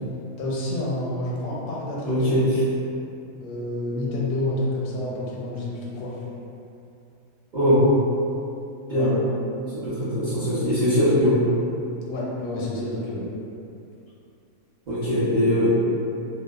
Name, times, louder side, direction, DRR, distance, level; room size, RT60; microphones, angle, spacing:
voice 1, 0.4-2.4 3.4-6.2 8.9-9.2 12.1-13.3, left 1 dB, 85° left, -5 dB, 1.1 m, -29 dB
voice 2, 2.0-2.6 7.5-7.9 8.9-9.1 9.8-11.4 14.9-15.7, equal, 50° right, -15 dB, 0.5 m, -21 dB
2.7 x 2.0 x 2.3 m, 2.7 s
omnidirectional pair, 1.6 m